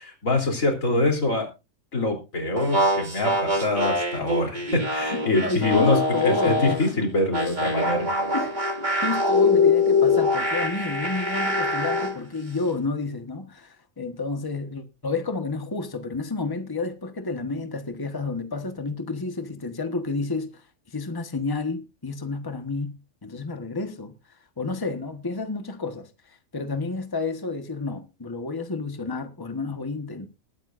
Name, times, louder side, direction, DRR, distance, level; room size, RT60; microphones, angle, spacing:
voice 1, 0.0-1.5 1.9-8.1, left 2 dB, 85° left, 3.9 m, -24 dB
sound 1, 2.6-6.9 7.3-12.2, left 2 dB, 35° right, 2.7 m, -24 dB
voice 2, 5.1-7.0 8.3-8.6 9.0-20.6 20.9-24.1 24.6-30.3, left 3 dB, 15° left, 1.3 m, -30 dB
20.5 x 9.2 x 2.6 m
omnidirectional pair, 1.4 m